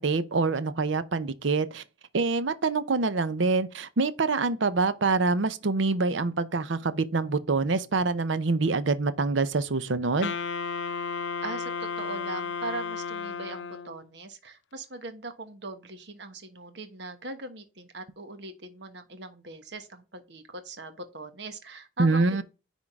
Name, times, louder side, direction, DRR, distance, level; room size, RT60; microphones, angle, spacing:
voice 1, 0.0-1.8 2.1-10.3 22.0-22.4, right 3 dB, 80° right, 0.7 m, -25 dB
Wind instrument woodwind instrument, 10.2-14.1, left 5 dB, 70° left, 0.5 m, -33 dB
voice 2, 11.4-22.4, right 2 dB, 65° right, 1.2 m, -40 dB
10.0 x 3.7 x 3.6 m
head